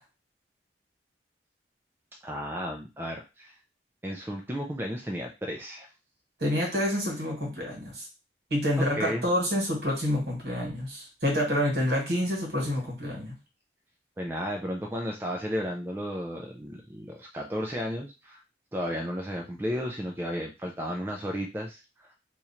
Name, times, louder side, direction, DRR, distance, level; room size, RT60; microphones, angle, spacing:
voice 1, 2.2-3.6 4.0-5.9 8.8-9.2 14.2-18.4 18.7-22.1, equal, 10° right, 0 dB, 0.3 m, -33 dB
voice 2, 6.4-8.1 8.5-13.3, equal, 60° right, -2 dB, 1.7 m, -28 dB
2.9 x 2.4 x 4.2 m, 0.28 s
head